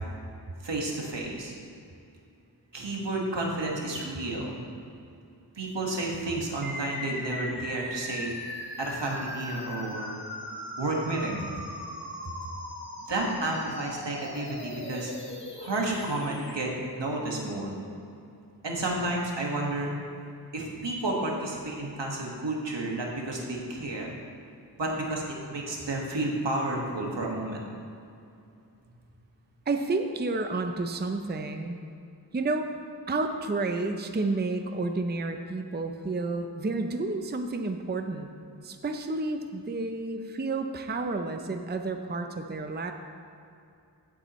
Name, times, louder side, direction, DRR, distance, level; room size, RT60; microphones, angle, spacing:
voice 1, 0.6-1.5 2.7-4.6 5.6-8.3 8.8-10.2 10.8-11.4 13.1-15.1 15.6-16.7 17.0-17.7 18.6-19.9 20.5-24.1 24.8-25.2 25.5-27.7, right 2 dB, 80° right, -1 dB, 1.8 m, -31 dB
sound 1, 6.6-16.6, left 1 dB, 25° left, 1.5 m, -39 dB
voice 2, 29.7-31.8 32.3-32.7 33.1-38.3 38.6-42.9, right 3 dB, 25° right, 5 dB, 0.6 m, -30 dB
16.0 x 8.3 x 3.1 m, 2.6 s
wide cardioid pair, 85°, 43 cm